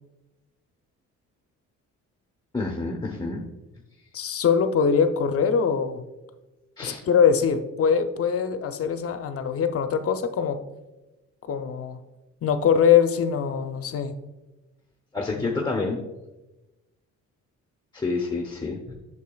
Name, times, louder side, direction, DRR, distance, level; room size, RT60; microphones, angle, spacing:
voice 1, 2.5-3.4 6.8-7.0 15.1-16.0 17.9-18.9, left 3 dB, 15° left, 0 dB, 0.8 m, -28 dB
voice 2, 4.1-6.0 6.8-10.6 11.5-12.0 12.4-14.1 15.4-15.6, left 7 dB, 50° left, 8 dB, 0.6 m, -22 dB
8.3 x 6.8 x 2.3 m, 1.1 s
cardioid pair, 90°, 30 cm